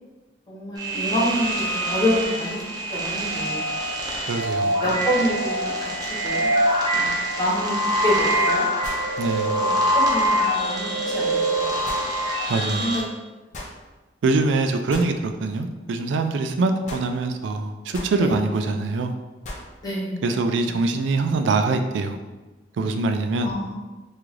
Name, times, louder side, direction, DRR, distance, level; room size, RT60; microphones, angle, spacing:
voice 1, 0.5-2.6 2.9-3.7 4.5-5.9 6.2-7.0 7.4-7.8 8.0-8.6 9.4-11.8 12.6-13.0 18.2-18.4 19.8-20.2 23.4-23.7, equal, 20° left, -6 dB, 1.0 m, -27 dB
sound 1, 0.8-13.0, right 1 dB, 20° right, 0.6 m, -24 dB
voice 2, 4.3-4.7 9.2-9.6 12.5-12.8 14.2-19.1 20.2-22.2 22.8-23.5, right 3 dB, 75° right, 7 dB, 0.3 m, -23 dB
sound 2, 7.6-7.7 8.8-9.2 11.8-12.1 13.5-13.8 14.9-15.1 16.9-17.1 17.9-18.2 19.4-19.7, left 1 dB, 40° left, 0.6 m, -36 dB
3.6 x 2.4 x 3.1 m, 1.2 s
head